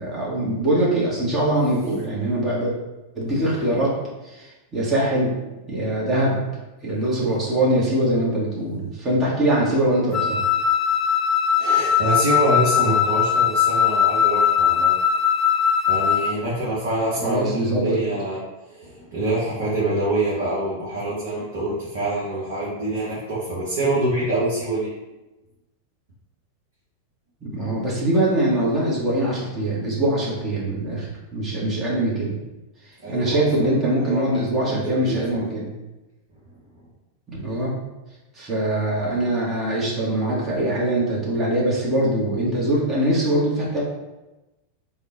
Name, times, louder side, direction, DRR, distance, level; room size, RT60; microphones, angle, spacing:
voice 1, 0.0-2.7 3.1-3.9 4.2-5.3 5.7-6.4 6.8-10.4 17.2-18.0 27.4-31.1 31.3-32.3 33.1-35.7 37.3-37.8 38.3-43.8, right 1 dB, 25° right, -6 dB, 1.3 m, -22 dB
Wind instrument woodwind instrument, 10.1-16.4, left 8 dB, 25° left, 0.3 m, -20 dB
voice 2, 11.6-14.9 15.9-18.4 18.7-24.9 33.0-33.7 34.0-34.4 34.7-35.5, right 1 dB, 55° right, -8 dB, 1.2 m, -25 dB
3.5 x 2.3 x 4.1 m, 1.0 s
figure-of-eight pair, 90°, 0 cm